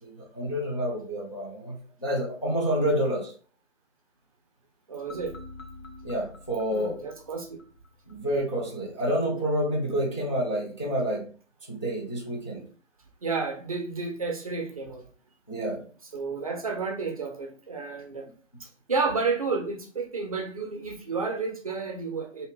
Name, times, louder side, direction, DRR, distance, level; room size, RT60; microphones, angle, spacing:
voice 1, 0.0-3.3 6.0-7.0 8.1-11.3 11.7-12.7 15.5-15.8, equal, 25° left, 0.4 m, -28 dB
voice 2, 4.9-5.4 6.7-7.6 13.2-15.0 16.1-18.3 18.6-22.5, right 4 dB, 30° right, 0.6 m, -31 dB
sound 1, 5.1-8.2, left 2 dB, 85° left, 0.9 m, -47 dB
3.5 x 2.6 x 3.4 m
figure-of-eight pair, 150°, 39 cm